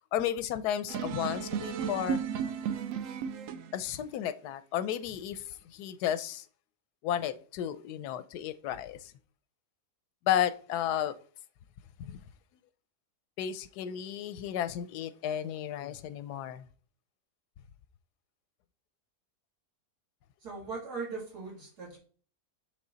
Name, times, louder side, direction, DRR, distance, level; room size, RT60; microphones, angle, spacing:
voice 1, 0.1-2.2 3.7-6.4 7.0-9.1 10.3-11.1 12.0-12.2 13.4-16.7, left 10 dB, 90° left, 1.2 m, -33 dB
sound 1, 0.9-3.8, right 8 dB, 65° right, 0.9 m, -34 dB
voice 2, 20.4-22.0, right 4 dB, 85° right, 3.2 m, -39 dB
8.4 x 3.5 x 3.9 m
omnidirectional pair, 1.7 m